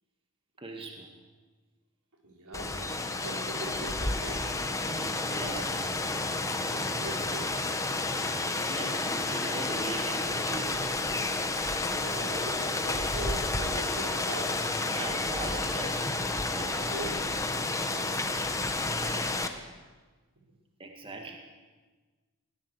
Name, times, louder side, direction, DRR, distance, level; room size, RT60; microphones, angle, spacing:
voice 1, 0.6-1.1 4.8-6.0 8.6-11.0 14.9-16.1 16.5-17.1 20.8-21.4, right 2 dB, 25° right, 2 dB, 2.1 m, -40 dB
voice 2, 2.2-4.5 6.7-7.5 11.9-14.7 16.6-17.2 17.8-18.1, right 2 dB, 80° right, 1 dB, 4.9 m, -41 dB
Rain, 2.5-19.5, left 2 dB, 15° left, 1.3 m, -31 dB
22.0 x 17.5 x 8.1 m, 1.3 s
head